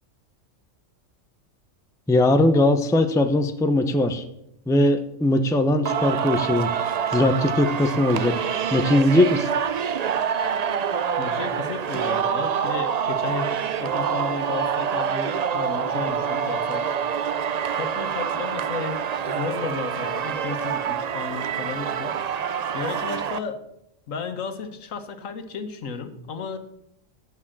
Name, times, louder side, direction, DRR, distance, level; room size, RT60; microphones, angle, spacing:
voice 1, 2.1-4.2 4.7-8.4 8.7-9.5, left 1 dB, 5° left, 7 dB, 0.5 m, -20 dB
Singing, 5.9-23.4, right 7 dB, 75° right, 0.3 m, -26 dB
voice 2, 11.2-16.9 17.7-22.2 22.7-23.6 24.1-26.6, left 5 dB, 80° left, 8 dB, 1.5 m, -33 dB
9.9 x 6.3 x 7.3 m, 0.79 s
omnidirectional pair, 1.4 m